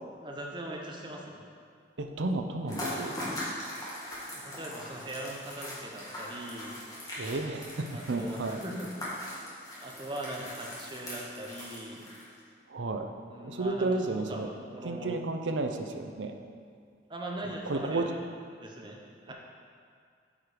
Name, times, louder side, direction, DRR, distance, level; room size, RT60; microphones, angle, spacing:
voice 1, 0.2-1.4 4.3-6.8 7.9-8.9 9.4-12.1 13.3-15.2 17.1-18.3 18.5-19.0 19.3-19.4, right 1 dB, 25° right, -1 dB, 0.9 m, -40 dB
voice 2, 2.0-3.2 7.2-8.6 12.7-13.1 13.4-14.5 14.8-16.4 17.4-18.1 19.3-19.4, right 2 dB, 90° right, 5 dB, 0.6 m, -32 dB
sound 1, 2.6-12.4, left 1 dB, 20° left, 1.6 m, -40 dB
8.6 x 4.7 x 5.0 m, 2.2 s
head